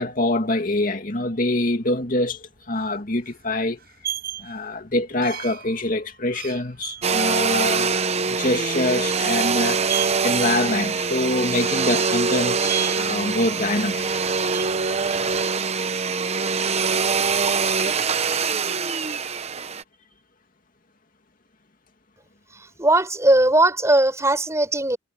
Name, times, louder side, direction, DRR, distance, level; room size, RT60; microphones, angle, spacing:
voice 1, 0.0-3.8 4.4-9.8 10.2-12.6 13.0-14.1, left 2 dB, 50° left, 2.5 m, -25 dB
sound 1, 2.0-15.4, right 10 dB, 55° right, 7.4 m, -36 dB
Domestic sounds home sounds, 7.0-19.8, right 5 dB, 35° right, 0.9 m, -23 dB
voice 2, 22.5-25.0, right 1 dB, 15° right, 4.8 m, -19 dB
head